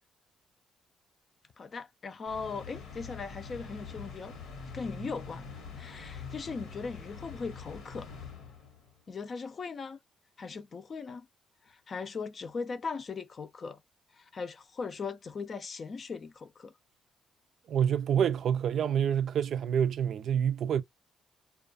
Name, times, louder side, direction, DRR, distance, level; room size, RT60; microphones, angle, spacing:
voice 1, 1.6-4.3 4.7-8.1 9.1-10.0 10.4-11.3 11.7-13.8 14.2-16.7, left 4 dB, 45° left, 0.4 m, -39 dB
sound 1, 2.2-8.9, left 5 dB, 90° left, 1.1 m, -45 dB
voice 2, 17.7-20.8, right 8 dB, 65° right, 0.3 m, -27 dB
2.3 x 2.3 x 2.4 m
cardioid pair, 90°, 0 cm